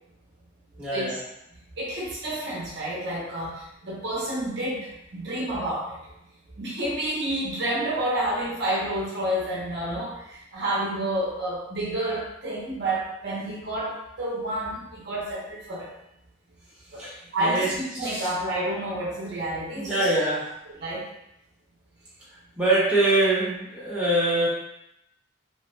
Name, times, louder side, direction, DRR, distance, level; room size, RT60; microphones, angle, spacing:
voice 1, 0.8-1.2 17.0-17.7 18.0-18.3 19.7-20.5 22.6-24.5, right 2 dB, 5° right, -11 dB, 1.0 m, -24 dB
voice 2, 1.7-6.0 6.6-15.9 16.9-17.0 17.3-20.1 20.8-21.1, right 1 dB, 55° right, -5 dB, 0.8 m, -29 dB
3.0 x 2.2 x 3.3 m, 0.82 s
head